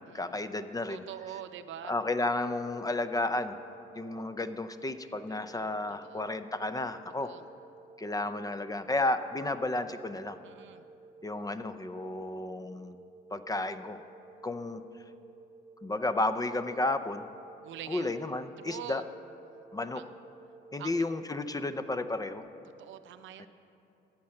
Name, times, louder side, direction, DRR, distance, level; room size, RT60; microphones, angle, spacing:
voice 1, 0.1-1.0 1.8-3.6 3.9-7.3 8.0-10.4 11.2-13.0 13.3-14.0 14.4-14.8 15.8-17.3 17.9-19.0 19.7-20.0 20.7-22.4 23.4-23.5, left 2 dB, 20° left, 11 dB, 0.5 m, -32 dB
voice 2, 0.9-1.9 5.5-5.7 6.0-6.2 7.2-7.4 10.4-10.8 17.6-18.2 18.6-19.0 19.9-20.0 20.8-21.0 22.8-23.5, right 10 dB, 75° right, 10 dB, 0.6 m, -44 dB
sound 1, 2.5-22.4, right 4 dB, 20° right, 0.8 m, -54 dB
14.0 x 5.8 x 7.6 m, 2.7 s
cardioid pair, 90°, 20 cm